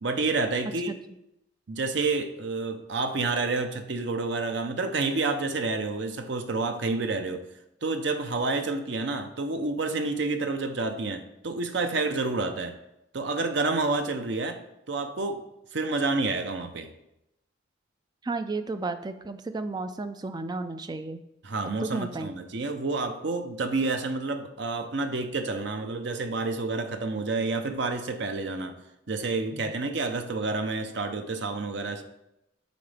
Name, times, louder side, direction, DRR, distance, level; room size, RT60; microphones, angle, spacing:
voice 1, 0.0-0.9 1.7-7.4 7.8-12.8 13.1-14.6 14.9-15.4 15.7-16.9 21.4-28.8 29.1-32.0, right 3 dB, 60° right, 7 dB, 0.6 m, -29 dB
voice 2, 18.2-21.2 21.8-22.3 29.5-29.6, right 3 dB, 20° right, 10 dB, 0.3 m, -33 dB
9.2 x 3.9 x 3.4 m, 0.86 s
head